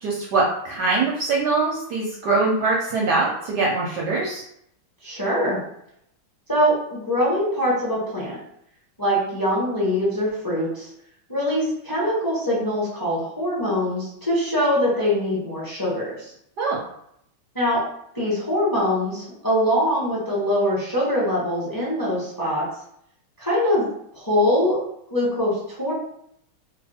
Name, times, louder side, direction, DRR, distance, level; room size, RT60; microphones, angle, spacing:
voice 1, 0.0-4.4 16.6-16.8, right 3 dB, 70° right, -3 dB, 1.0 m, -23 dB
voice 2, 5.0-5.6 6.5-8.4 9.0-10.9 11.3-16.3 17.5-17.8 18.1-22.6 23.4-23.9 24.1-24.8 25.1-25.9, equal, 15° left, -7 dB, 0.8 m, -23 dB
3.1 x 2.5 x 4.2 m, 0.72 s
omnidirectional pair, 2.3 m